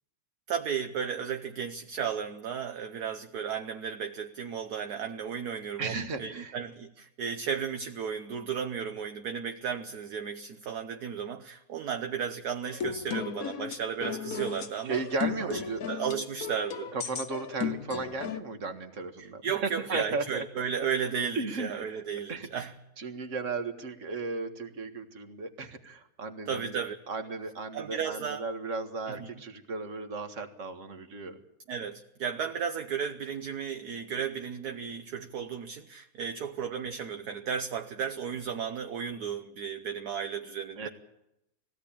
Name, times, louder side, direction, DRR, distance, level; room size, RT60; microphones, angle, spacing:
voice 1, 0.5-15.0 15.5-15.6 15.9-16.9 19.2-22.7 26.5-26.9 27.7-28.4 29.2-29.3 31.7-40.9, right 7 dB, 65° right, 1.4 m, -34 dB
voice 2, 5.8-6.6 14.8-15.8 16.9-20.4 20.8-20.9 21.3-22.0 22.3-22.7 23.0-31.4 40.8-40.9, right 4 dB, 45° right, 1.9 m, -35 dB
sound 1, 12.6-18.4, left 8 dB, 55° left, 1.4 m, -35 dB
21.0 x 16.5 x 8.7 m
omnidirectional pair, 1.9 m